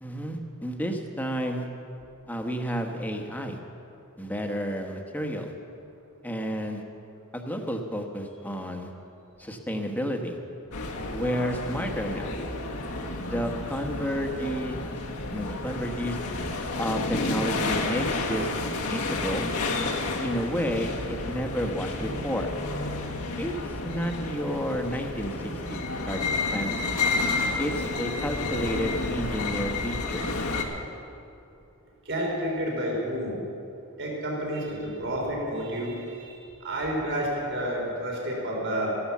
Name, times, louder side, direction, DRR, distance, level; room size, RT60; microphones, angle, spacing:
voice 1, 0.0-1.7 2.3-3.6 4.2-5.5 6.2-6.8 7.3-8.9 9.4-10.4 11.1-12.3 13.3-14.9 15.3-16.2 16.8-18.5 18.9-19.5 20.2-22.5 23.4-23.5 23.8-25.3 25.7-25.8 26.1-27.0 27.6-30.3, equal, 10° left, 3 dB, 1.1 m, -31 dB
sound 1, 10.7-30.6, left 3 dB, 85° left, 1.7 m, -31 dB
voice 2, 32.1-33.4 34.0-39.0, equal, 55° right, -2 dB, 3.6 m, -30 dB
14.0 x 11.5 x 7.3 m, 2.7 s
head